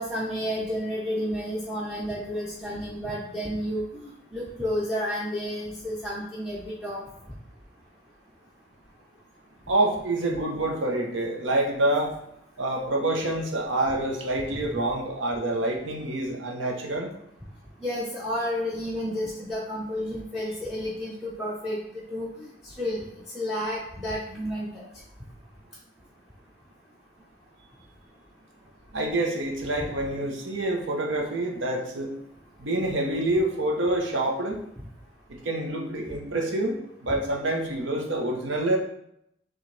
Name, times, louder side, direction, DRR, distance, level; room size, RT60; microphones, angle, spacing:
voice 1, 0.0-7.0 17.8-21.8 22.1-23.0 23.3-24.8 37.1-37.2, equal, ahead, -7 dB, 0.5 m, -31 dB
voice 2, 9.7-12.1 12.6-17.1 28.9-32.1 32.6-34.6 35.3-36.8 37.0-38.8, right 1 dB, 80° right, 0 dB, 0.9 m, -27 dB
6.3 x 2.4 x 3.2 m, 0.77 s
head